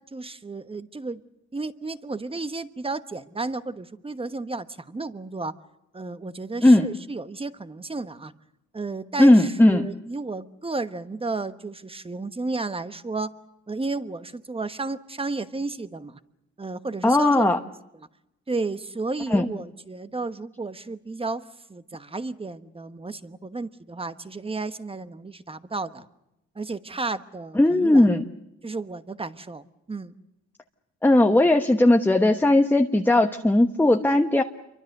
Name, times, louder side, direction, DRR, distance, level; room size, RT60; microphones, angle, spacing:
voice 1, 0.1-1.2 1.5-5.5 5.9-8.3 8.7-13.3 13.7-16.2 16.6-17.7 18.5-26.1 26.5-28.0 28.6-30.1, right 3 dB, 20° right, 11 dB, 1.2 m, -33 dB
voice 2, 9.2-9.9 17.0-17.6 19.3-19.4 27.6-28.3 31.0-34.4, left 1 dB, 5° left, 5 dB, 1.1 m, -18 dB
27.5 x 24.0 x 6.7 m, 0.89 s
cardioid pair, 90°, 30 cm